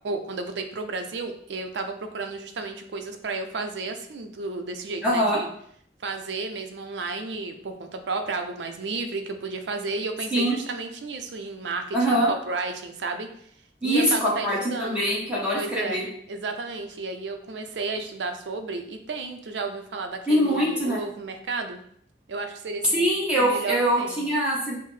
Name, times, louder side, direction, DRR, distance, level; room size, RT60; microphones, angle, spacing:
voice 1, 0.0-5.5 6.0-13.3 13.8-15.0 15.5-21.8 22.3-23.1 23.4-24.2, right 3 dB, 80° right, 6 dB, 0.5 m, -32 dB
voice 2, 5.0-5.4 10.3-10.6 11.9-12.3 13.8-16.1 20.3-21.0 22.9-24.7, equal, 5° right, -7 dB, 0.9 m, -23 dB
5.5 x 2.0 x 3.2 m, 0.65 s
head